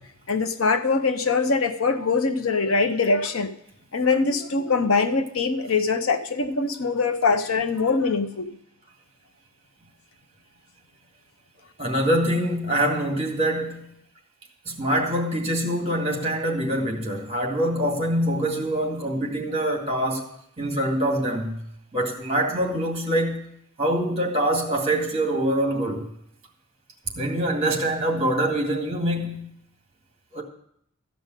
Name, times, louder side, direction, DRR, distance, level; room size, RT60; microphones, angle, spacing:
voice 1, 0.3-3.5 3.9-8.5, left 4 dB, 75° left, 0.8 m, -23 dB
voice 2, 11.8-13.8 14.7-20.3 20.6-21.6 21.9-23.5 23.8-26.1 27.2-29.5 30.3-30.4, right 1 dB, 25° right, 2.0 m, -24 dB
14.0 x 5.2 x 9.0 m
head